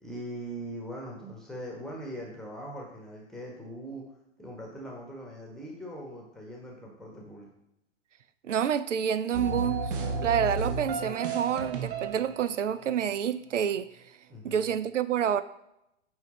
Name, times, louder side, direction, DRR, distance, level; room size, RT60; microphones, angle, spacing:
voice 1, 0.0-4.0 4.4-7.5 14.3-14.7, right 1 dB, ahead, -2 dB, 1.0 m, -41 dB
voice 2, 8.4-9.9 10.2-13.9 14.4-15.4, right 8 dB, 75° right, 14 dB, 0.5 m, -28 dB
sound 1, 9.3-12.6, right 4 dB, 45° right, 0.9 m, -32 dB
8.1 x 3.3 x 4.1 m, 0.84 s
figure-of-eight pair, 105°, 36 cm